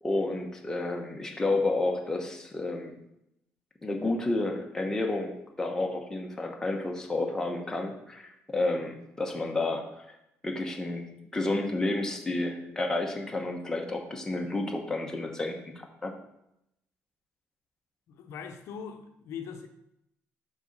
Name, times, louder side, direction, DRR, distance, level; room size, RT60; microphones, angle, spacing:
voice 1, 0.0-3.0 3.8-10.0 10.4-16.1, left 2 dB, 10° left, 1 dB, 1.0 m, -31 dB
voice 2, 18.1-19.7, left 7 dB, 70° left, 6 dB, 0.7 m, -41 dB
6.1 x 4.1 x 5.2 m, 0.81 s
cardioid pair, 120°, 5 cm